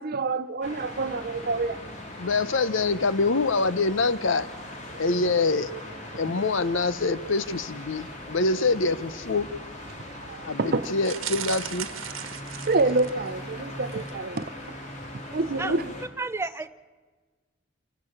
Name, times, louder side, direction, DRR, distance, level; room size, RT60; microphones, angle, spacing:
voice 1, 0.0-1.8 5.1-5.4 6.1-6.2 10.0-10.9 12.7-14.8 15.3-15.9, right 3 dB, 50° right, 0.8 m, -28 dB
sound 1, 0.6-16.1, left 1 dB, 35° left, 2.8 m, -40 dB
voice 2, 2.2-4.5 5.0-5.7 6.2-9.5 10.4-11.9 15.5-15.8, left 3 dB, 65° left, 0.8 m, -25 dB
sound 2, 11.0-13.3 13.8-14.1 14.4-14.5, right 10 dB, 80° right, 1.2 m, -36 dB
voice 3, 16.2-16.7, right 3 dB, 15° right, 0.6 m, -30 dB
27.5 x 11.0 x 8.7 m
head